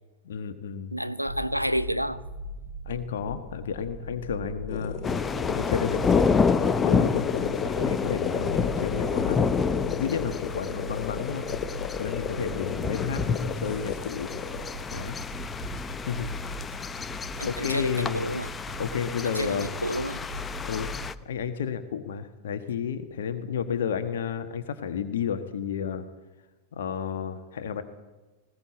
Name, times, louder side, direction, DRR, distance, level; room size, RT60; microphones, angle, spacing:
voice 1, 0.2-0.9 2.8-5.0 5.5-9.5 9.8-11.4 12.0-14.3 14.9-15.2 16.1-16.3 17.4-18.4 18.8-19.7 20.6-20.9 21.2-26.0 26.7-27.8, left 7 dB, 60° left, 9 dB, 1.2 m, -31 dB
voice 2, 0.9-2.2 17.4-18.5 19.2-20.2, equal, 90° right, 13 dB, 0.7 m, -30 dB
sound 1, 1.2-21.1, equal, 50° right, 6.8 m, -40 dB
sound 2, 4.7-14.7, left 9 dB, 40° left, 2.0 m, -34 dB
sound 3, 5.0-21.1, left 5 dB, 15° left, 0.8 m, -29 dB
20.0 x 18.0 x 8.4 m, 1.2 s
figure-of-eight pair, 90°, 0 cm